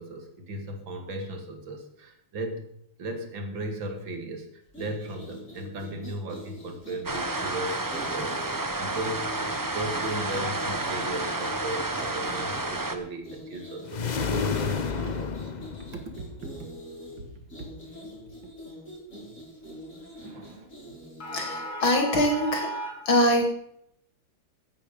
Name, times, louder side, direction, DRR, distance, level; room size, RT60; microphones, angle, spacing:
voice 1, 0.0-2.7 3.0-9.3 9.7-15.6 15.9-16.6 17.2-17.3 20.0-20.7, right 1 dB, 75° right, 5 dB, 2.9 m, -37 dB
sound 1, 4.7-21.7, equal, 35° left, 5.2 m, -44 dB
sound 2, 7.0-12.9, right 2 dB, 25° right, 0.5 m, -30 dB
sound 3, 13.9-16.5, left 5 dB, 60° left, 0.4 m, -30 dB
voice 2, 21.2-23.4, equal, 85° left, 2 dB, 3.6 m, -24 dB
16.0 x 9.3 x 5.3 m, 0.73 s
omnidirectional pair, 2.1 m